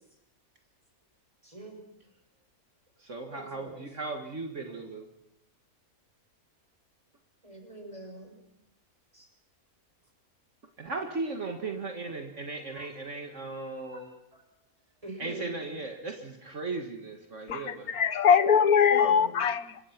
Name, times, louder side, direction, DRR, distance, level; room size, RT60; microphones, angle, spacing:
voice 1, 1.4-1.8 3.2-3.8 7.4-8.4 9.1-9.3 12.7-12.9 13.9-14.0 14.3-14.4 15.0-15.6 18.9-19.3, right 1 dB, 20° right, 2 dB, 6.9 m, -42 dB
voice 2, 3.0-5.0 10.8-14.1 15.2-18.0, right 3 dB, 55° right, 4 dB, 2.1 m, -37 dB
voice 3, 17.5-19.8, left 7 dB, 85° left, 12 dB, 1.6 m, -22 dB
26.5 x 24.0 x 6.0 m, 0.83 s
omnidirectional pair, 1.5 m